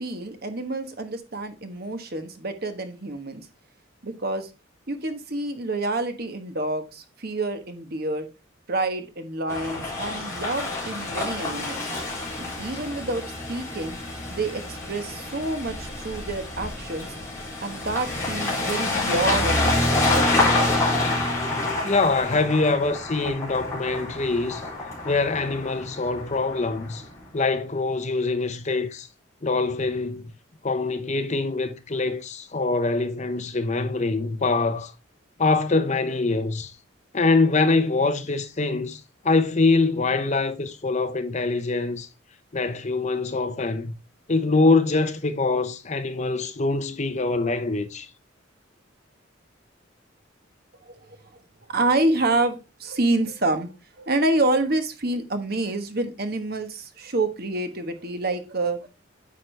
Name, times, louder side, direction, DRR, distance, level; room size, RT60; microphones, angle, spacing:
voice 1, 0.0-3.5 4.0-4.5 4.9-8.3 8.7-11.8 12.4-13.2 13.5-14.0 14.3-17.1 17.6-20.1 50.8-51.2 51.7-53.7 54.0-58.9, right 2 dB, 50° right, 1.2 m, -27 dB
sound 1, 9.5-27.1, left 2 dB, 15° left, 4.0 m, -27 dB
voice 2, 21.8-24.6 25.0-27.0 27.3-29.1 29.4-30.3 30.6-34.9 35.4-36.7 37.1-42.1 42.5-44.0 44.3-48.1, left 3 dB, 35° left, 0.8 m, -24 dB
9.5 x 6.0 x 3.3 m
head